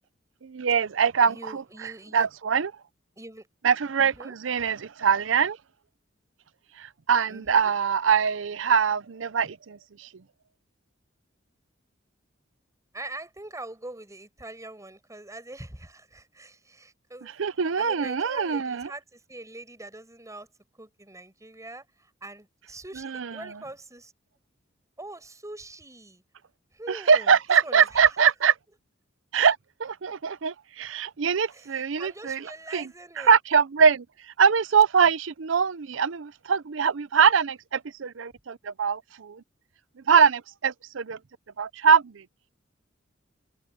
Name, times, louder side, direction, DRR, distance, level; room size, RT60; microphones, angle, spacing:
voice 1, 0.4-2.7 3.6-5.6 6.8-10.1 17.2-18.9 23.0-23.5 26.9-28.5 29.3-32.9 33.2-39.4 40.1-41.2 41.6-42.2, right 6 dB, 75° right, 0.6 m, -23 dB
voice 2, 1.3-2.3 3.2-3.5 4.0-4.3 7.3-7.7 12.9-17.3 17.8-20.5 20.8-24.1 25.0-26.2 26.7-27.4 27.6-28.2 31.5-33.3, right 2 dB, 15° right, 6.8 m, -43 dB
open air
head